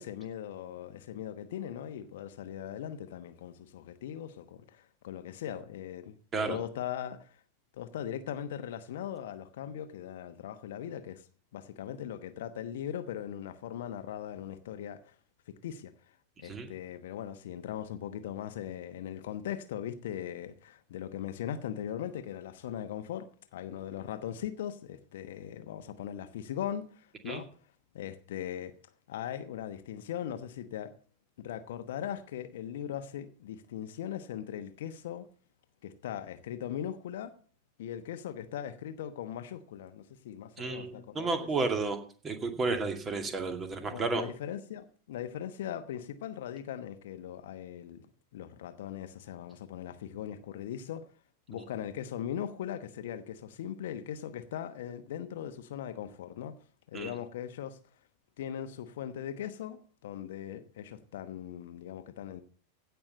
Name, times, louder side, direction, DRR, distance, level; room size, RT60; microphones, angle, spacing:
voice 1, 0.0-6.2 6.5-7.4 7.7-11.3 11.5-15.1 15.5-15.9 16.4-27.5 27.9-28.7 29.1-30.9 31.4-35.3 35.8-37.3 37.8-41.5 43.9-48.1 48.3-51.1 51.5-56.5 56.9-57.8 58.4-62.4, left 10 dB, 55° left, 1.0 m, -39 dB
voice 2, 40.6-42.0 42.2-44.2 56.9-57.1, right 3 dB, 20° right, 2.3 m, -32 dB
16.0 x 5.8 x 6.6 m
figure-of-eight pair, 90°, 0 cm